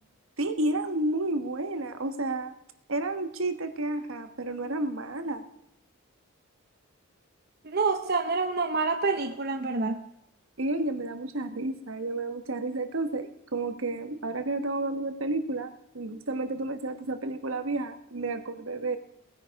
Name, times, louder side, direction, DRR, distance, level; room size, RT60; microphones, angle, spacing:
voice 1, 0.4-2.5 2.9-5.4 10.6-19.0, right 2 dB, 70° right, 8 dB, 1.3 m, -31 dB
voice 2, 7.6-10.0, right 4 dB, 45° right, 5 dB, 0.8 m, -27 dB
18.5 x 9.8 x 4.8 m, 0.83 s
head